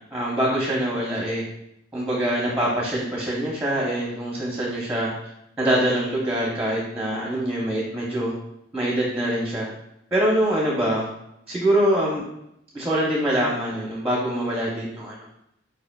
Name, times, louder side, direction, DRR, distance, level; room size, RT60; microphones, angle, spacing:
voice 1, 0.1-1.4 1.9-5.1 5.6-8.3 8.7-9.7 10.1-11.1 11.5-12.2 12.7-15.2, right 1 dB, 5° right, -4 dB, 0.8 m, -24 dB
4.9 x 4.6 x 2.3 m, 0.79 s
head